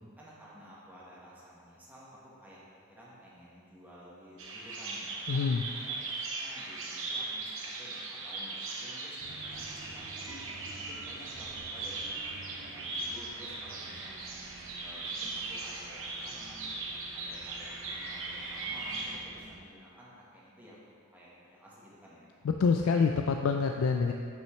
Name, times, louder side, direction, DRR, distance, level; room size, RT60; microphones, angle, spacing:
voice 1, 0.2-2.6 2.9-5.5 5.8-6.0 6.4-10.4 10.7-14.4 14.8-16.7 17.1-22.3, equal, 10° right, -7 dB, 1.4 m, -53 dB
Bird vocalization bird call bird song, 4.4-19.2, right 3 dB, 60° right, 1.0 m, -39 dB
voice 2, 5.3-5.6 22.4-24.1, left 5 dB, 70° left, 4 dB, 0.3 m, -26 dB
sound 1, 9.2-19.6, right 2 dB, 45° right, 0.5 m, -52 dB
8.6 x 6.0 x 3.2 m, 2.3 s
head